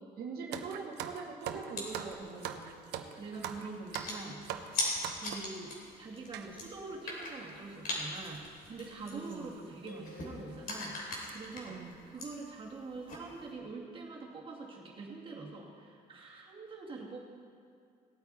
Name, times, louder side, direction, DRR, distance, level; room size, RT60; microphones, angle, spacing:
voice 1, 0.0-2.8 9.1-9.5 11.7-11.9, right 5 dB, 65° right, -1 dB, 1.3 m, -43 dB
sound 1, 0.5-5.6 6.3-6.5 7.2-7.3 7.5-7.7 8.7-8.9 9.3-9.4 10.0-10.1 10.5-10.7 11.1-11.3, right 9 dB, 85° right, 0.8 m, -42 dB
sound 2, 1.7-13.5, left 2 dB, 55° left, 3.2 m, -42 dB
voice 2, 3.2-4.5 5.2-11.0 11.3-17.2, right 3 dB, 30° right, -3 dB, 2.3 m, -45 dB
sound 3, 9.9-11.4, left 4 dB, 80° left, 2.6 m, -54 dB
17.5 x 9.0 x 4.2 m, 2.3 s
cardioid pair, 110°, 17 cm